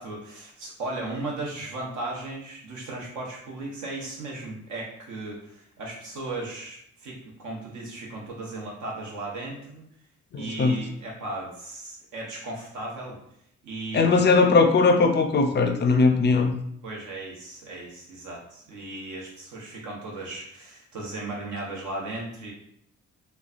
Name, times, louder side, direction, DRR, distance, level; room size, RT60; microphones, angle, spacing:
voice 1, 0.0-9.8 10.3-13.2 13.6-14.2 16.8-22.5, right 2 dB, 75° right, -2 dB, 1.0 m, -36 dB
voice 2, 10.3-10.8 13.9-16.5, left 4 dB, 35° left, 5 dB, 0.4 m, -19 dB
3.1 x 2.2 x 2.4 m, 0.70 s
cardioid pair, 90°, 30 cm